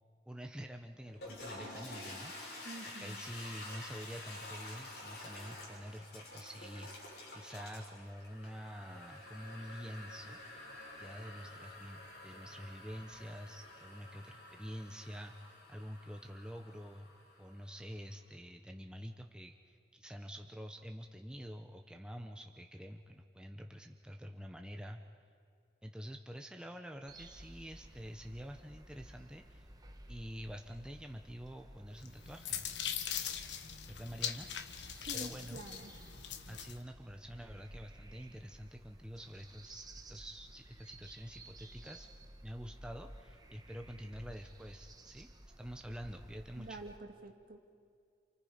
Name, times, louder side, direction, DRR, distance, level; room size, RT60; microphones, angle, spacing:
voice 1, 0.3-2.6 2.8-10.4 11.0-17.1 17.4-25.0 25.8-29.7 30.1-32.7 33.9-34.5 35.1-35.6 36.5-42.1 42.4-45.3 45.6-46.8, equal, 5° right, 3 dB, 0.8 m, -47 dB
Toilet flush, 1.0-17.8, left 2 dB, 65° left, 7.2 m, -50 dB
voice 2, 2.6-3.2 34.9-35.9 46.5-47.7, right 1 dB, 55° right, 4 dB, 2.1 m, -48 dB
sound 1, 27.1-47.0, right 1 dB, 20° right, 1.2 m, -55 dB
sound 2, 32.0-36.8, left 9 dB, 80° left, 1.2 m, -41 dB
29.0 x 28.0 x 5.1 m, 2.3 s
head